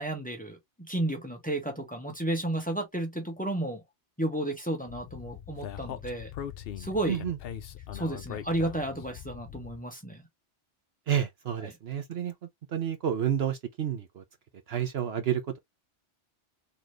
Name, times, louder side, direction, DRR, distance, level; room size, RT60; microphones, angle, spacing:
voice 1, 0.0-3.8 4.2-6.3 6.8-7.2 7.9-10.3 11.6-11.7, right 1 dB, 5° left, 1.2 m, -32 dB
Speech, 4.9-9.8, left 10 dB, 60° left, 0.8 m, -41 dB
voice 2, 7.1-7.4 11.1-12.3 12.7-14.2 14.7-15.6, right 9 dB, 60° right, 0.9 m, -30 dB
4.1 x 2.9 x 3.1 m
omnidirectional pair, 1.2 m